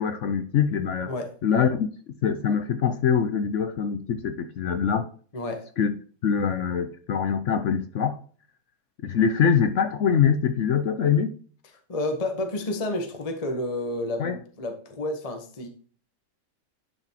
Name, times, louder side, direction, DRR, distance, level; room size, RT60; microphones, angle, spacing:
voice 1, 0.0-1.1 1.4-5.1 5.8-5.9 6.2-8.2 9.0-11.3 14.2-14.4, left 7 dB, 65° left, 0.7 m, -24 dB
voice 2, 5.3-5.7 11.9-14.3 14.6-15.7, left 1 dB, 25° left, 1.0 m, -30 dB
10.5 x 5.9 x 2.9 m
omnidirectional pair, 1.9 m